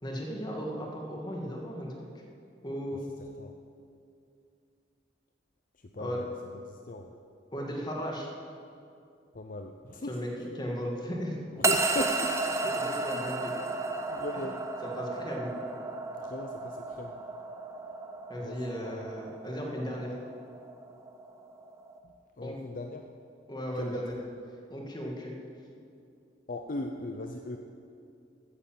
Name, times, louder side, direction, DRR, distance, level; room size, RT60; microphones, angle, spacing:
voice 1, 0.0-1.9 2.6-3.1 6.0-6.2 7.5-8.3 10.1-11.4 12.7-13.5 14.8-15.5 18.3-20.2 22.4-22.6 23.5-24.1 24.7-25.3, equal, 25° left, -1 dB, 2.1 m, -36 dB
voice 2, 5.8-6.3 6.7-7.2 9.3-10.2 11.5-13.3 14.1-14.6 16.1-17.2 18.4-19.1 22.0-23.0 23.8-24.0 26.5-27.6, left 1 dB, 50° left, 4 dB, 0.7 m, -38 dB
sound 1, 11.6-22.0, right 3 dB, 15° right, 0.8 m, -33 dB
14.0 x 9.7 x 7.7 m, 2.5 s
head